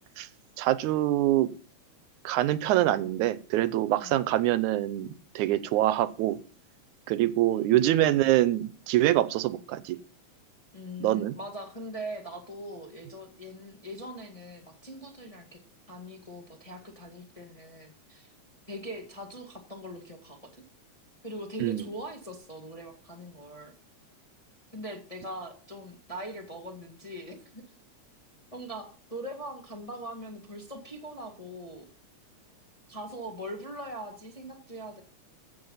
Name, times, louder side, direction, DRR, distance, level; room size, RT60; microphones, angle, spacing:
voice 1, 0.6-1.5 2.2-5.1 5.4-6.4 7.1-10.0 11.0-11.4 21.6-21.8, right 14 dB, 85° right, 15 dB, 2.2 m, -25 dB
voice 2, 7.5-7.8 10.7-15.6 15.9-18.3 18.7-20.6 21.2-23.7 24.7-27.6 28.5-31.8 32.9-35.0, equal, 15° left, 2 dB, 1.5 m, -41 dB
14.5 x 7.6 x 5.6 m, 0.42 s
omnidirectional pair, 3.4 m